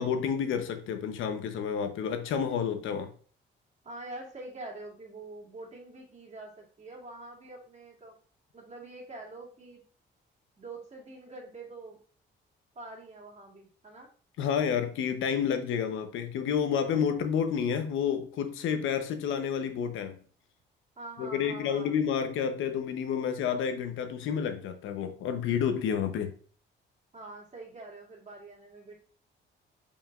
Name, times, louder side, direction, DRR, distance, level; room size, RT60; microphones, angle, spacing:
voice 1, 0.0-3.1 14.4-20.2 21.2-26.3, left 7 dB, 85° left, 0.9 m, -30 dB
voice 2, 3.8-8.2 8.5-9.8 10.6-12.0 12.7-14.1 21.0-22.0 27.1-28.9, right 2 dB, 35° right, 2.5 m, -45 dB
7.3 x 5.1 x 2.5 m
cardioid pair, 90°, 20 cm